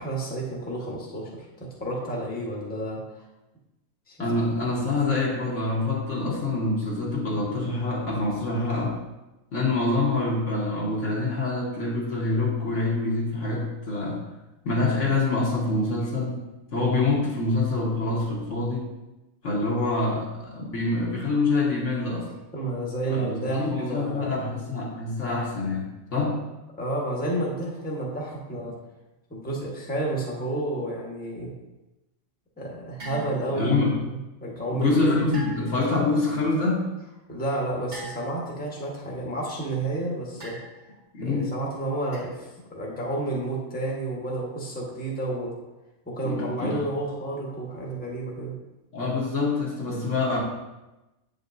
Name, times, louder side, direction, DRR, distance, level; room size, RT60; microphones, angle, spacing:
voice 1, 0.0-3.2 4.1-4.2 22.5-24.5 26.8-28.7 29.3-31.5 32.6-33.7 34.1-35.2 37.3-40.6 41.2-45.5 46.0-48.5, right 2 dB, 5° left, -3 dB, 1.2 m, -31 dB
voice 2, 4.2-9.0 9.5-14.2 14.6-16.4 16.7-18.9 19.4-22.3 23.1-26.4 33.5-34.0 34.7-36.9 41.1-41.5 46.2-46.8 48.9-50.4, left 3 dB, 60° left, -4 dB, 1.6 m, -26 dB
sound 1, 33.0-33.7 35.3-35.9 37.9-38.6 40.4-41.0 42.1-42.4, right 2 dB, 70° right, 2.6 m, -41 dB
8.3 x 5.3 x 2.6 m, 1.0 s
omnidirectional pair, 1.5 m